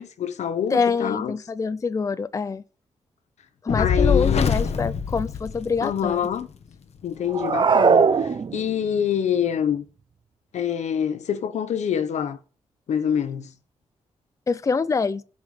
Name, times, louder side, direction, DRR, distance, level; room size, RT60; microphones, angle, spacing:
voice 1, 0.0-1.3 3.8-4.5 5.8-6.5 7.0-9.8 10.5-12.4 12.9-13.5, left 8 dB, 80° left, 1.2 m, -26 dB
voice 2, 0.7-2.6 3.6-6.2 14.5-15.2, left 5 dB, 30° left, 0.5 m, -25 dB
Fire, 3.7-6.1, left 6 dB, 65° left, 1.3 m, -23 dB
sound 1, 7.3-8.9, right 5 dB, 45° right, 0.8 m, -19 dB
17.0 x 5.7 x 5.1 m
cardioid pair, 105°, 12 cm